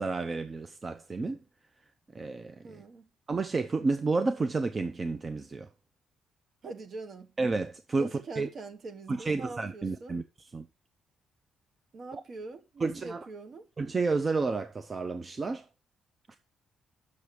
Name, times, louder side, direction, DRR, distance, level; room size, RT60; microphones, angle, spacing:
voice 1, 0.0-1.4 2.1-2.6 3.3-5.7 7.4-8.1 8.4-8.5 9.1-10.2 10.5-10.7 12.8-13.3 13.8-15.6 16.3-16.4, right 3 dB, 35° right, 0.6 m, -30 dB
voice 2, 2.6-3.1 6.6-7.3 8.0-10.2 11.9-13.7, right 3 dB, 50° right, 1.2 m, -43 dB
6.8 x 6.6 x 4.7 m
cardioid pair, 90°, 0 cm